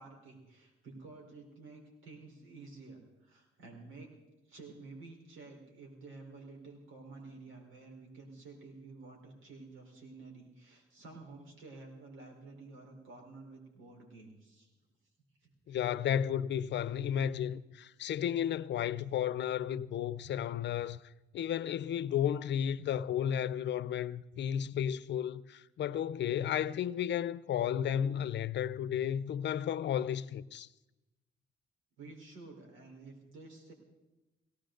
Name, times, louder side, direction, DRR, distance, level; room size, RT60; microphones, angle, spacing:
voice 1, 0.0-4.1 4.4-14.7 15.4-15.8 32.0-33.7, right 3 dB, 85° right, 4.2 m, -51 dB
voice 2, 15.7-21.0 21.3-30.7, left 9 dB, 65° left, 0.6 m, -33 dB
19.0 x 17.5 x 3.9 m
cardioid pair, 90°, 20 cm